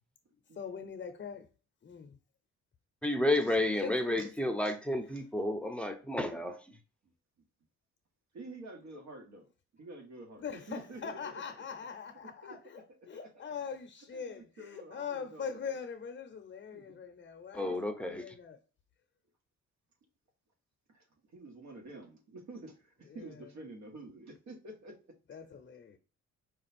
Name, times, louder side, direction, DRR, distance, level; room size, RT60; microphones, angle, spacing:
voice 1, 0.6-1.5 1.8-2.2 3.4-4.6 10.4-18.6 23.1-23.5 25.3-26.0, left 6 dB, 35° left, 0.7 m, -42 dB
voice 2, 3.0-6.8 17.5-18.3, left 1 dB, 5° left, 0.7 m, -31 dB
voice 3, 8.3-11.4 12.4-12.8 13.1-13.5 14.1-15.8 16.7-17.0 20.9-25.0, right 2 dB, 65° right, 1.6 m, -49 dB
5.1 x 2.4 x 4.2 m
cardioid pair, 90°, 30 cm